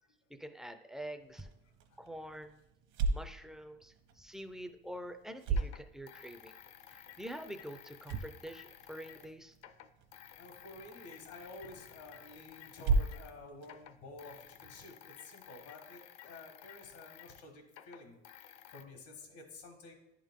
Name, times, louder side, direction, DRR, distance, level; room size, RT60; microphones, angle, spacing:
voice 1, 0.3-1.5 2.0-2.6 3.1-6.5 6.9-9.6, equal, ahead, 7 dB, 0.3 m, -46 dB
sound 1, 1.2-14.8, right 3 dB, 65° right, 0.9 m, -39 dB
sound 2, 4.4-4.5 5.5-9.3 9.5-13.4 13.6-18.8, left 10 dB, 55° left, 0.5 m, -55 dB
voice 2, 10.4-19.9, left 2 dB, 85° left, 3 dB, 1.6 m, -51 dB
10.5 x 3.7 x 3.6 m, 0.90 s
supercardioid pair, 115°, 31 cm